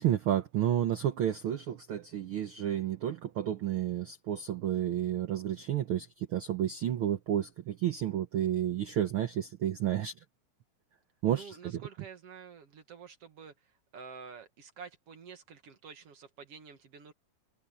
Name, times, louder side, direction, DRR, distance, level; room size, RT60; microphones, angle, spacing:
voice 1, 0.0-10.1 11.2-11.8, right 11 dB, 75° right, 1.2 m, -31 dB
voice 2, 11.3-17.1, right 6 dB, 55° right, 2.5 m, -49 dB
omnidirectional pair, 3.6 m